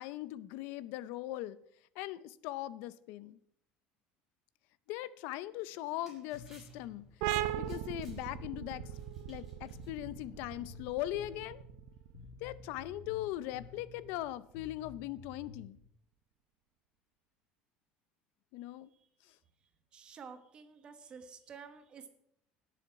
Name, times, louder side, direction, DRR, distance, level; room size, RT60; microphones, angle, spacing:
voice 1, 0.0-1.6 2.0-3.4 4.9-7.1 7.6-8.8 9.3-11.6 12.4-15.8 18.5-18.9, left 14 dB, 70° left, 17 dB, 0.6 m, -40 dB
sound 1, 5.5-10.7, equal, 5° right, 6.2 m, -65 dB
Bass guitar, 6.3-15.8, left 4 dB, 40° left, 4.1 m, -53 dB
sound 2, 7.2-14.5, right 13 dB, 80° right, 0.8 m, -40 dB
voice 2, 18.6-19.1 19.6-22.1, right 6 dB, 30° right, 9 dB, 1.3 m, -52 dB
18.0 x 7.1 x 4.7 m, 0.69 s
cardioid pair, 160°, 3 cm